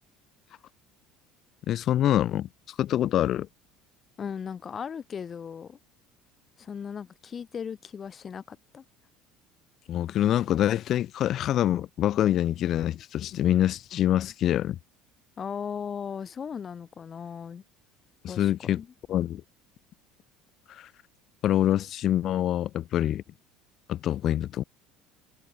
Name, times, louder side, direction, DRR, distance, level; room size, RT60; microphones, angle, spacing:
voice 1, 1.7-2.5 2.8-3.5 9.9-14.8 18.2-18.8 19.1-19.4 20.8-20.9 21.4-23.2 23.9-24.6, left 12 dB, 45° left, 0.8 m, -25 dB
voice 2, 4.2-5.8 6.6-8.8 15.4-17.6 18.3-18.9, left 7 dB, 30° left, 5.8 m, -37 dB
cardioid pair, 125°, 0 cm